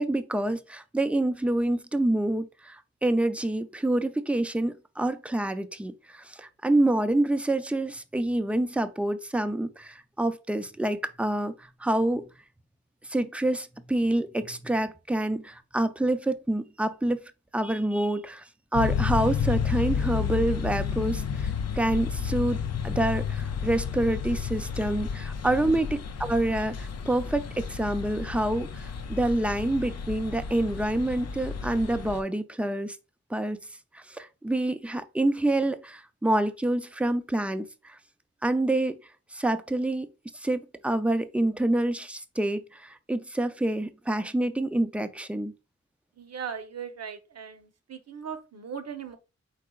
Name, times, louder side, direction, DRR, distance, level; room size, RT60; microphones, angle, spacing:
voice 1, 0.0-12.3 13.0-17.2 17.5-33.0 33.3-33.6 33.9-38.0 38.4-39.0 39.3-40.1 40.3-45.5, right 1 dB, 5° right, 0.3 m, -27 dB
sound 1, 18.7-32.2, left 6 dB, 60° left, 0.5 m, -31 dB
voice 2, 46.2-49.2, right 7 dB, 60° right, 0.7 m, -39 dB
4.7 x 4.2 x 2.3 m
wide cardioid pair, 135°, 29 cm